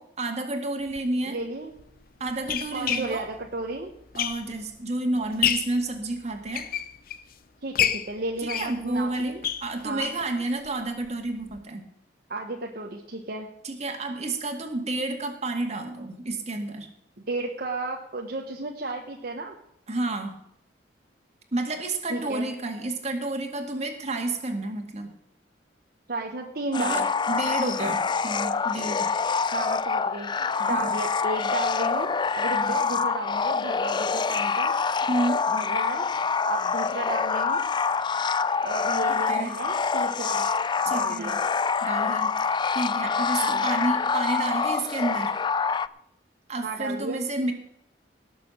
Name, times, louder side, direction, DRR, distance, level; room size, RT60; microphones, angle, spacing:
voice 1, 0.0-1.4 2.2-3.3 4.1-6.7 8.4-11.8 13.6-16.9 19.9-20.4 21.5-25.1 26.8-29.1 30.6-30.9 32.5-32.8 35.1-35.4 39.1-39.5 40.9-41.3 41.8-45.3 46.5-47.5, right 2 dB, 40° right, 3 dB, 2.1 m, -30 dB
sound 1, 0.9-1.0 1.8-4.7 5.1-5.8 6.3-7.3 7.7-10.3 10.6-10.7 11.0-11.1 11.5-11.6, left 10 dB, 55° left, 0.7 m, -29 dB
voice 2, 1.3-1.7 2.7-3.9 7.6-9.4 9.8-10.1 12.3-13.5 17.3-19.6 22.1-22.5 26.1-27.1 27.6-27.9 29.5-34.7 35.5-36.0 36.4-37.6 38.6-40.5 40.9-41.4 43.4-43.7 46.6-47.2, right 2 dB, 60° right, 1 dB, 1.1 m, -33 dB
sound 2, 26.7-45.9, left 5 dB, 25° left, 0.4 m, -26 dB
18.0 x 6.8 x 6.5 m, 0.74 s
head